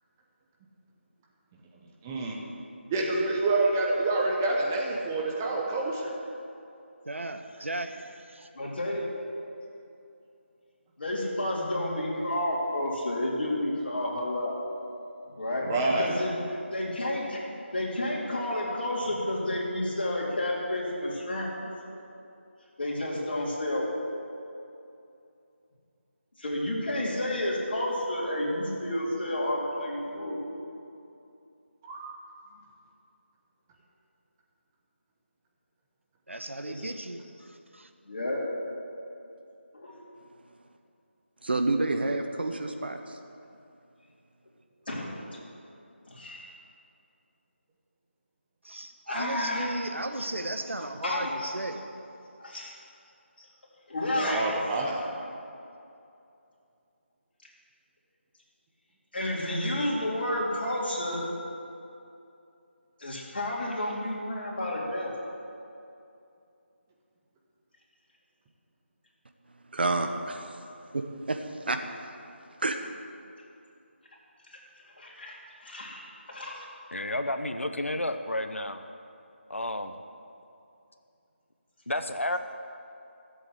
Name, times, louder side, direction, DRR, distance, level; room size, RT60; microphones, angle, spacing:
voice 1, 2.0-2.4 2.9-6.1 15.7-16.1 31.8-32.2 54.1-55.1, right 2 dB, 15° right, -2 dB, 0.9 m, -27 dB
voice 2, 7.0-8.5 36.3-37.9 48.6-51.9, right 1 dB, 75° right, 7 dB, 1.2 m, -36 dB
voice 3, 8.5-9.1 11.0-14.6 15.4-17.4 17.7-22.0 22.8-23.9 26.4-30.4 36.7-36.8 38.1-38.4 39.7-40.0 44.9-45.2 46.1-46.5 49.1-49.7 51.0-51.5 52.4-52.7 53.4-53.5 53.9-54.4 59.1-61.2 63.0-65.1 74.5-74.6 75.0-76.0 76.3-76.7, left 1 dB, 50° left, -4 dB, 3.6 m, -31 dB
voice 4, 41.4-43.0 69.7-70.5 70.9-71.8 72.6-72.8, right 2 dB, 55° right, 5 dB, 1.2 m, -28 dB
voice 5, 76.9-78.8 79.5-80.0 81.9-82.4, left 1 dB, 85° left, 8 dB, 1.0 m, -31 dB
14.5 x 7.9 x 8.0 m, 2.7 s
figure-of-eight pair, 165°, 7 cm